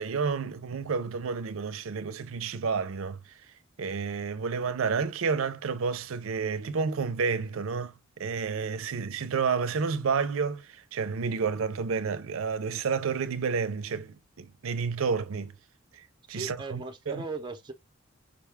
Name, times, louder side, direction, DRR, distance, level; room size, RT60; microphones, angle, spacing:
voice 1, 0.0-3.2 3.8-15.5 15.9-16.8 17.1-17.2, right 5 dB, 75° right, 0.5 m, -30 dB
voice 2, 16.3-17.7, right 3 dB, 20° right, 0.6 m, -38 dB
5.1 x 2.2 x 3.4 m
head